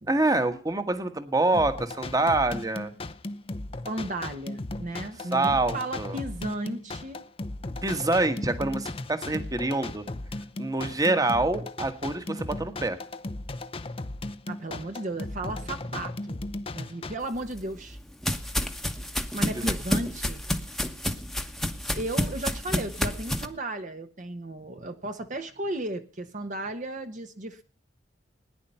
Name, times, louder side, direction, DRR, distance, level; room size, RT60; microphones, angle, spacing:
voice 1, 0.1-2.9 5.3-6.2 7.8-10.0 10.6-13.0 19.7-19.8, right 2 dB, 20° right, 9 dB, 1.4 m, -26 dB
sound 1, 1.5-17.1, left 2 dB, 30° left, 0.7 m, -36 dB
voice 2, 3.8-7.2 14.5-16.4 16.7-18.0 19.3-20.4 21.9-27.6, right 1 dB, 45° right, 6 dB, 1.1 m, -35 dB
sound 2, 17.3-23.5, equal, ahead, 1.1 m, -30 dB
18.5 x 10.0 x 5.6 m, 0.41 s
head